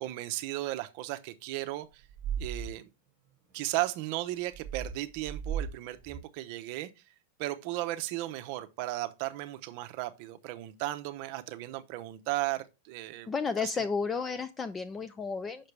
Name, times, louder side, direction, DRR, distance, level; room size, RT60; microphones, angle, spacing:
voice 1, 0.0-2.0 2.4-2.9 3.5-6.9 7.4-13.3 13.6-13.7, right 16 dB, 50° right, 0.7 m, -35 dB
sound 1, 2.1-2.7 4.5-5.7 6.1-6.2, right 7 dB, 30° right, 1.4 m, -35 dB
voice 2, 13.3-15.7, left 5 dB, 15° left, 0.4 m, -32 dB
6.6 x 5.9 x 3.3 m
supercardioid pair, 145°, 0 cm